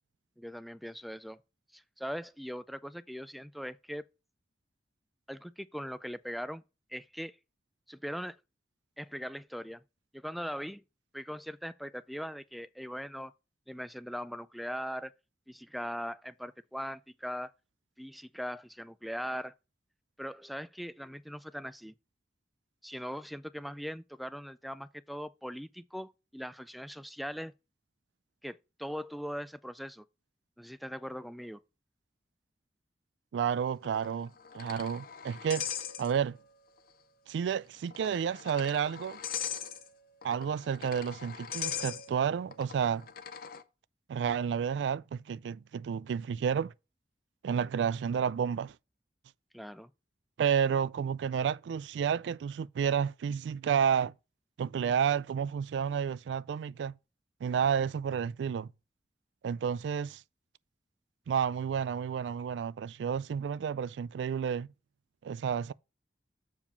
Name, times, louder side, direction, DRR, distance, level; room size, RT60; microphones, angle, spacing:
voice 1, 0.4-1.4 1.7-4.0 5.3-6.6 6.9-7.4 7.9-8.4 9.0-9.8 10.1-10.8 11.1-13.3 13.7-15.1 15.5-17.5 18.0-19.5 20.2-21.9 22.8-27.5 28.4-30.0 30.6-31.6 49.5-49.9, equal, ahead, 0.3 m, -40 dB
voice 2, 33.3-35.7 36.0-36.4 37.3-39.2 40.2-43.1 44.1-46.7 47.4-48.7 50.4-54.1 54.6-56.9 57.4-58.7 59.4-60.2 61.3-64.7 65.2-65.7, right 7 dB, 85° right, 0.3 m, -31 dB
sound 1, 33.8-36.5 36.8-36.9 37.8-43.6, left 9 dB, 55° left, 0.7 m, -41 dB
7.2 x 4.8 x 5.3 m
head